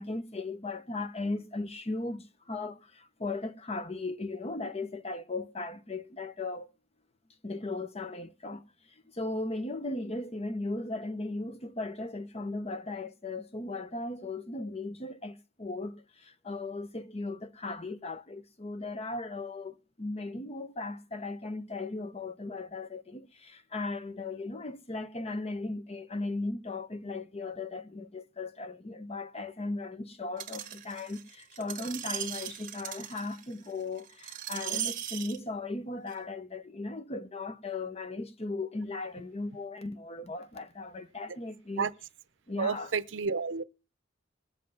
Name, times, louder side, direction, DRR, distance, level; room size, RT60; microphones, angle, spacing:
voice 1, 0.0-6.7 7.4-8.6 9.1-41.9 42.5-42.9, left 2 dB, 30° left, 0.9 m, -37 dB
Screech, 30.4-35.4 36.1-36.2, right 10 dB, 45° right, 1.3 m, -38 dB
voice 2, 42.6-43.6, right 5 dB, 65° right, 0.6 m, -30 dB
20.5 x 7.6 x 5.6 m
head